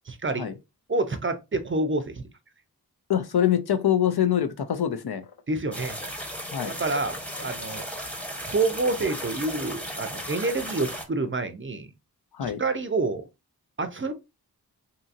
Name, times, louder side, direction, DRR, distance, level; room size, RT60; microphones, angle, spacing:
voice 1, 0.1-0.5 0.9-2.3 5.5-6.0 6.7-7.8 8.5-11.9 12.4-13.3 13.8-14.1, right 3 dB, 30° right, 0.5 m, -28 dB
voice 2, 3.1-5.3 6.5-6.7 12.3-12.6, left 10 dB, 75° left, 0.5 m, -24 dB
sound 1, 5.7-11.1, equal, 5° left, 0.8 m, -36 dB
2.7 x 2.6 x 2.4 m
wide cardioid pair, 45°, 38 cm